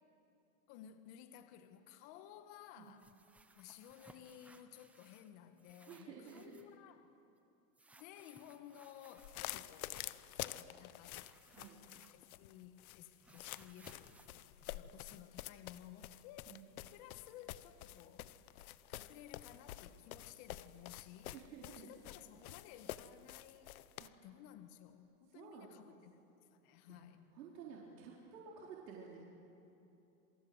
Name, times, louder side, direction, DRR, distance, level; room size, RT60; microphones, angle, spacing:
voice 1, 0.7-3.1 3.5-7.1 8.0-11.3 12.1-14.2 14.7-16.6 16.9-26.2 26.5-27.2, left 11 dB, 40° left, 8 dB, 1.5 m, -56 dB
sound 1, 2.8-5.3 5.6-6.8 7.7-10.3 11.2-12.5 12.7-15.4, right 2 dB, 5° right, 0.5 m, -64 dB
voice 2, 5.9-6.6 11.5-11.8 16.5-16.7 21.3-21.9 24.0-24.1 25.3-26.0 26.9-27.0 27.3-29.2, right 6 dB, 75° right, -3 dB, 4.6 m, -52 dB
sound 2, 9.2-24.1, left 14 dB, 60° left, 1.1 m, -49 dB
27.5 x 26.0 x 8.0 m, 2.9 s
supercardioid pair, 155°, 49 cm